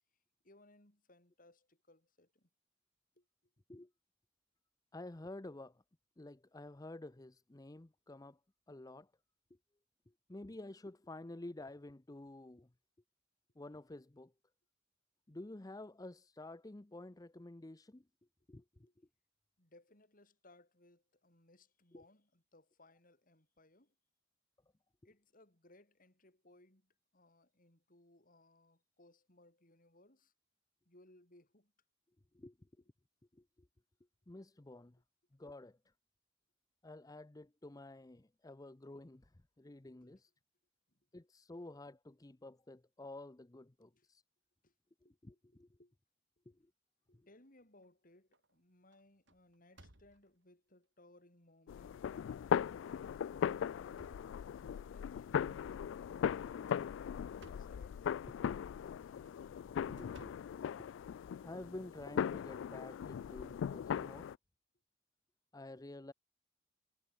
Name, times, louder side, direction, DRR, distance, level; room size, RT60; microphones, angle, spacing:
voice 1, 0.4-2.5 3.1-3.3 18.9-19.0 19.6-23.9 25.0-30.3 30.8-31.7 40.0-40.1 40.9-41.0 43.8-44.1 44.6-44.7 45.0-45.9 46.5-46.6 47.1-53.8 54.6-59.3, left 1 dB, 45° left, 5.0 m, -66 dB
voice 2, 4.9-5.8 6.2-8.4 8.7-9.1 10.1-12.7 13.6-14.3 15.3-18.0 18.5-19.1 21.9-22.0 32.3-32.7 33.3-33.7 34.3-35.0 35.3-35.9 36.8-40.3 41.1-44.2 45.2-45.8 46.5-46.7 47.1-47.3 59.7-60.4 60.8-60.9 61.4-64.3 65.5-66.1, left 2 dB, 20° left, 0.6 m, -51 dB
sound 1, 47.3-47.9 48.3-48.6 48.9-50.5 51.2-51.3 51.8-51.9 52.8-53.0 53.5-54.9 56.4-57.9 59.0-61.3, right 1 dB, 70° right, 4.9 m, -63 dB
sound 2, 51.7-64.4, left 8 dB, 75° left, 0.3 m, -39 dB
head